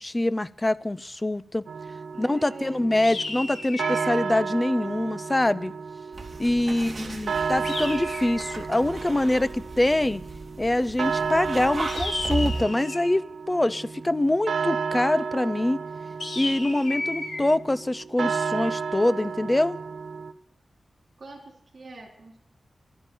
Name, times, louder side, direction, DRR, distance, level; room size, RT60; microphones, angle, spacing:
voice 1, 0.0-1.7 2.2-5.7 6.4-10.2 10.6-15.8 16.4-19.8, left 1 dB, 15° left, 17 dB, 0.5 m, -24 dB
sound 1, 1.7-20.3, right 5 dB, 85° right, 0.8 m, -33 dB
voice 2, 2.1-3.1 6.7-7.5 21.2-22.4, right 2 dB, 55° right, 1 dB, 4.0 m, -45 dB
sound 2, 3.0-4.2 7.6-8.7 11.9-13.1 16.2-17.4, left 2 dB, 75° left, 2.8 m, -33 dB
sound 3, 6.1-12.6, right 2 dB, 35° right, 2.6 m, -36 dB
12.5 x 10.0 x 9.1 m, 0.71 s
wide cardioid pair, 115°, 0 cm